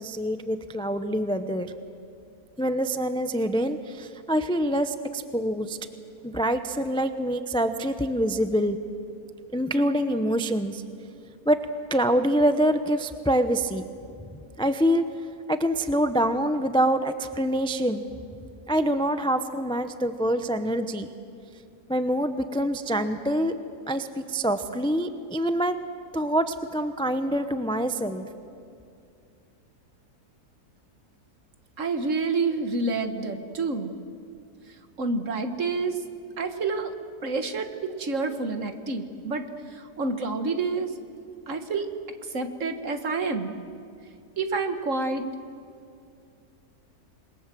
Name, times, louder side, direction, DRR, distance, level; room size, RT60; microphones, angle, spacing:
voice 1, 0.0-1.7 2.6-5.8 6.2-8.8 9.5-10.8 11.5-11.6 11.9-13.9 14.6-15.0 15.5-18.1 18.7-21.1 21.9-23.5 23.9-25.8 26.1-28.3, equal, 5° left, 9 dB, 0.5 m, -25 dB
voice 2, 31.8-33.9 35.0-36.0 36.4-36.9 37.2-40.9 41.5-41.9 42.3-43.5 44.4-45.2, right 3 dB, 50° right, 7 dB, 1.7 m, -28 dB
27.0 x 21.5 x 7.6 m, 2.5 s
omnidirectional pair, 1.7 m